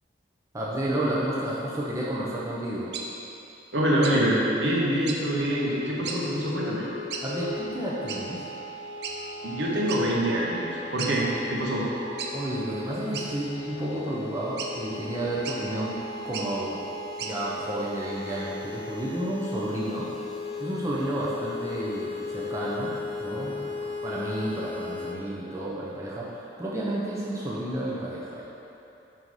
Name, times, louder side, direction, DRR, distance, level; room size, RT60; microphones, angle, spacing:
voice 1, 0.5-2.9 7.2-8.5 12.3-16.8 17.2-20.1 20.6-22.9 23.2-28.4, right 1 dB, 15° right, -7 dB, 0.6 m, -31 dB
sound 1, 2.9-3.1 4.0-4.2 5.1-5.2 6.0-6.2 7.1-7.3 8.1-8.2 9.0-9.2 9.9-10.0 10.5-10.6 11.0-11.1 12.2-12.3 13.1-13.7 14.6-14.7 15.4-15.6 16.2-16.5 17.2-17.4, right 6 dB, 60° right, 0.5 m, -35 dB
voice 2, 3.7-6.8 9.4-10.6 10.9-11.9, right 1 dB, 75° right, -5 dB, 1.1 m, -25 dB
sound 2, 5.3-25.2, left 3 dB, 30° left, 0.3 m, -37 dB
5.6 x 4.0 x 4.7 m, 2.8 s
head